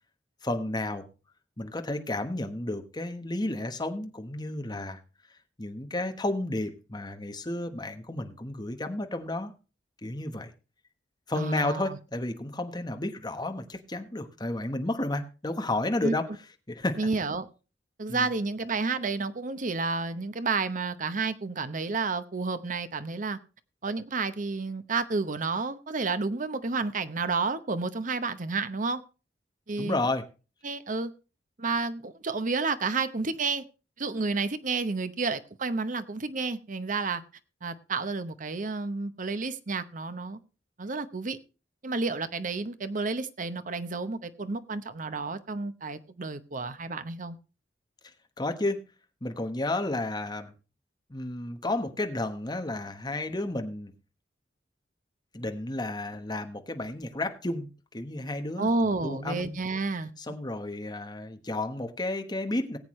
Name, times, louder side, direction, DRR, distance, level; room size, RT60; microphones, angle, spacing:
voice 1, 0.4-1.1 1.6-5.0 5.6-9.5 10.0-10.5 11.3-16.3 16.7-17.0 18.1-18.3 29.8-30.3 48.4-48.8 49.2-50.5 51.1-53.9 55.3-57.7 57.9-59.6 60.2-62.8, left 2 dB, 25° left, 1.2 m, -32 dB
voice 2, 11.4-12.0 16.0-16.1 17.0-17.5 18.0-23.4 23.8-29.0 29.7-30.0 30.6-31.1 31.6-33.6 34.0-37.2 37.6-40.4 40.8-41.4 41.8-47.4 58.6-60.1, right 4 dB, 45° right, 0.9 m, -30 dB
19.0 x 8.2 x 3.1 m
head